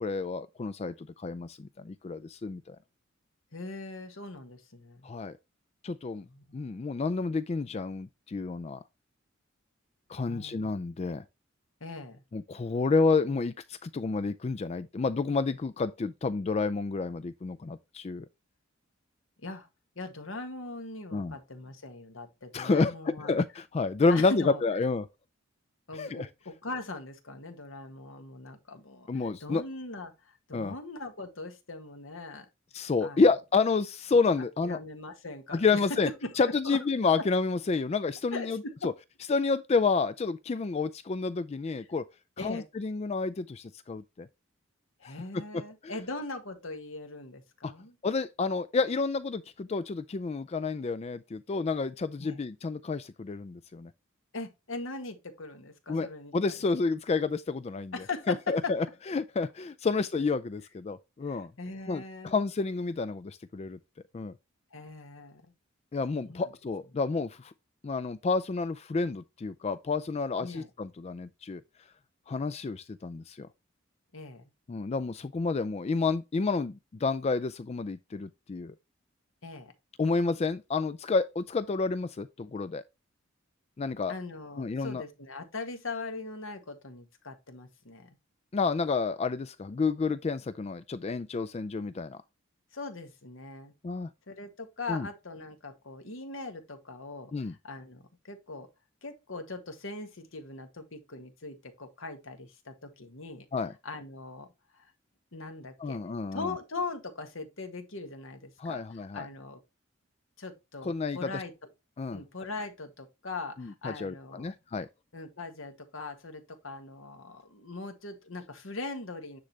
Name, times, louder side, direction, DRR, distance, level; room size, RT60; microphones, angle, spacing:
voice 1, 0.0-2.8 5.0-5.4 5.8-6.3 6.5-8.8 10.1-11.2 12.3-18.3 21.1-21.4 22.5-25.1 25.9-26.3 29.1-29.6 30.5-30.7 32.7-34.8 35.5-36.1 36.4-38.9 39.3-42.0 42.4-44.3 45.0-45.1 45.8-45.9 47.6-47.7 48.0-53.9 55.9-57.9 58.3-61.5 61.9-63.8 64.1-64.3 65.9-67.5 67.8-71.6 72.3-73.5 74.7-78.7 80.0-82.8 83.8-84.1 84.6-85.0 88.5-92.2 93.8-94.1 94.9-95.1 97.3-97.5 103.5-103.7 105.8-106.5 108.6-109.3 110.8-111.4 112.0-112.2 113.6-114.9, left 4 dB, 30° left, 0.3 m, -30 dB
voice 2, 3.5-5.1 6.2-6.6 10.3-10.7 11.8-12.2 19.4-19.7 19.9-23.3 24.1-24.6 25.9-32.5 33.0-33.2 34.6-35.8 36.2-36.8 38.3-38.9 42.4-42.7 45.0-47.9 52.2-52.4 54.3-56.6 57.9-58.7 61.2-62.3 64.7-65.5 66.2-66.4 70.4-70.7 74.1-74.5 79.4-79.7 84.1-88.2 92.7-93.7 94.3-98.7 99.0-103.4 103.8-104.5 104.7-104.9 105.3-106.0 106.3-109.6 110.4-111.5 112.1-114.5 115.1-119.4, left 3 dB, 75° left, 1.7 m, -40 dB
9.8 x 3.9 x 3.2 m
head